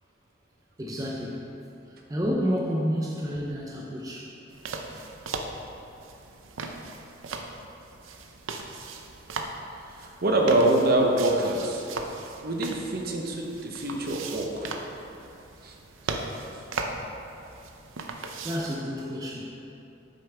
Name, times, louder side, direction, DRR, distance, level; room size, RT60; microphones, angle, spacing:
voice 1, 0.8-1.5 2.1-4.3 18.4-19.5, equal, 20° right, -3 dB, 0.6 m, -29 dB
sound 1, 4.5-18.8, right 3 dB, 80° right, 0.6 m, -38 dB
voice 2, 10.0-11.8 12.4-14.7 15.6-15.7, right 1 dB, 50° right, 1 dB, 0.8 m, -25 dB
8.0 x 6.7 x 3.4 m, 2.7 s
head